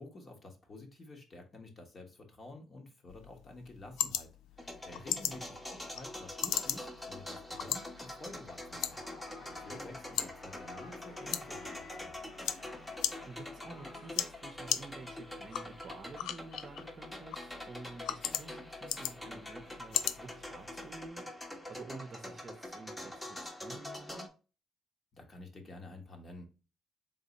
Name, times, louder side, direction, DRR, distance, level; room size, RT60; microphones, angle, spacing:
voice 1, 0.0-4.3 4.5-9.0 9.5-12.2 25.1-26.5, left 2 dB, 45° left, 1.2 m, -50 dB
sound 1, 3.1-21.1, left 10 dB, 90° left, 0.3 m, -40 dB
sound 2, 4.6-24.3, left 1 dB, 15° left, 0.9 m, -45 dB
voice 2, 4.9-5.4 12.8-12.9 13.2-24.3, right 4 dB, 45° right, 0.6 m, -50 dB
sound 3, 8.9-14.3, left 3 dB, 65° left, 1.2 m, -53 dB
3.8 x 2.7 x 4.0 m
cardioid pair, 90°, 0 cm